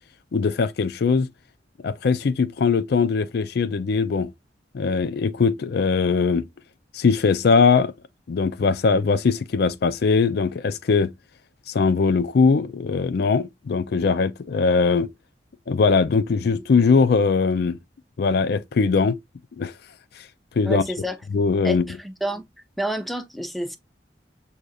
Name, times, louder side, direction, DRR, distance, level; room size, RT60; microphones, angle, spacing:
voice 1, 0.3-1.3 1.8-4.3 4.7-6.5 6.9-7.9 8.3-11.1 11.7-15.1 15.7-17.8 18.2-19.2 19.6-19.7 20.6-20.8 21.3-21.8, left 5 dB, 60° left, 0.4 m, -20 dB
voice 2, 20.6-21.2 21.6-22.4 22.8-23.8, right 1 dB, ahead, 0.5 m, -29 dB
6.3 x 2.7 x 2.3 m
head